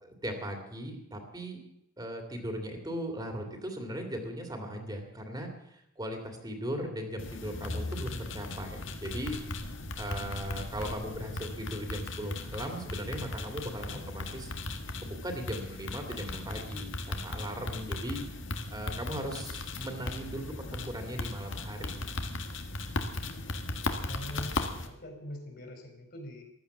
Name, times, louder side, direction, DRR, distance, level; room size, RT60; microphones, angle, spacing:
voice 1, 0.0-1.6 2.0-9.4 10.0-14.5 15.0-18.2 18.7-22.2, equal, 20° right, 4 dB, 2.5 m, -38 dB
sound 1, 7.2-24.9, left 2 dB, 75° left, 1.7 m, -37 dB
voice 2, 24.0-26.4, left 1 dB, 50° left, 4 dB, 4.4 m, -43 dB
15.0 x 12.5 x 7.2 m, 0.79 s
head